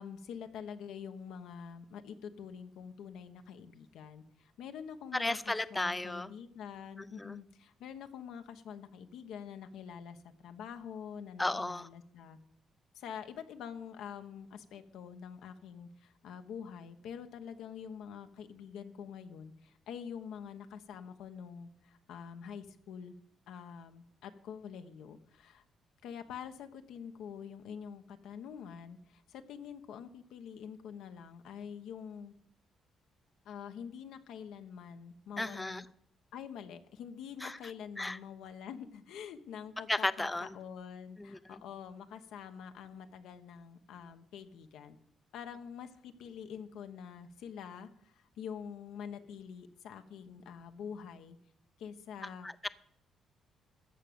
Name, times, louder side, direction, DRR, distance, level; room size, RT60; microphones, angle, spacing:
voice 1, 0.0-12.4 12.9-23.1 23.5-25.6 26.0-32.3 33.4-35.9 36.3-45.0 45.3-51.4 51.8-52.5, left 7 dB, 85° left, 1.1 m, -46 dB
voice 2, 5.1-6.3 7.2-7.4 11.4-11.9 35.4-35.8 37.4-37.6 38.0-38.2 39.9-40.5 41.2-41.4 52.4-52.7, left 2 dB, 15° left, 0.5 m, -34 dB
14.0 x 5.1 x 9.2 m
cardioid pair, 90°, 0 cm